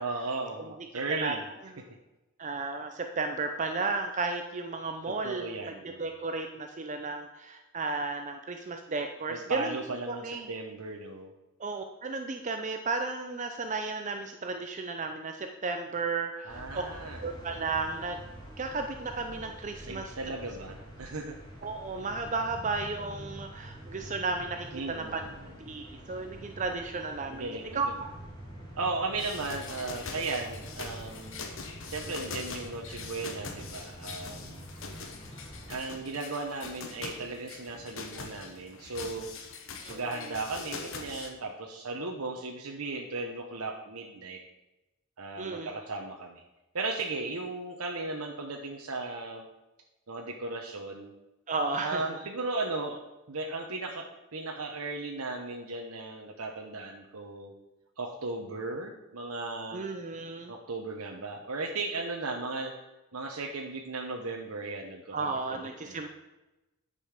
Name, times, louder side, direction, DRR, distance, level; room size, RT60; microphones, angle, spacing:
voice 1, 0.0-1.5 5.0-6.0 9.3-11.3 16.4-17.3 19.8-21.3 24.7-25.5 27.3-27.9 28.8-31.4 31.9-34.7 35.7-39.3 39.9-44.4 45.2-46.4 46.7-49.5 50.1-51.1 51.8-53.0 53.3-57.5 58.0-59.8 60.5-62.7 63.1-66.0, right 3 dB, 75° right, 1 dB, 1.0 m, -36 dB
voice 2, 2.4-9.8 10.1-10.5 11.6-16.8 17.2-18.2 18.6-20.1 21.6-25.2 25.6-28.1 39.8-40.2 45.4-45.7 51.5-52.2 59.7-60.5 65.1-66.1, right 3 dB, 35° right, 5 dB, 0.6 m, -34 dB
sound 1, 16.5-35.7, equal, 20° left, 2.2 m, -46 dB
sound 2, 29.2-41.3, left 4 dB, 60° left, 1.3 m, -43 dB
10.0 x 5.4 x 6.5 m, 1.0 s
head